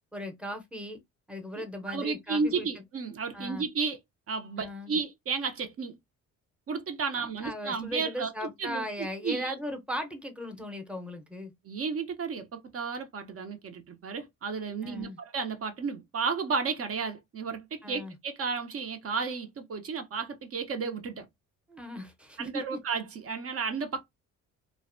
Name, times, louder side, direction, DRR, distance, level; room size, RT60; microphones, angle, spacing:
voice 1, 0.1-1.0 1.3-2.7 3.3-3.7 4.6-5.0 7.2-11.5 14.8-15.2 17.8-18.1 21.7-22.8, equal, 5° right, 0.7 m, -37 dB
voice 2, 1.6-4.0 4.3-6.0 6.7-9.5 11.6-12.5 12.7-21.3 22.4-24.0, right 5 dB, 50° right, 0.6 m, -33 dB
2.5 x 2.1 x 2.5 m
cardioid pair, 90°, 30 cm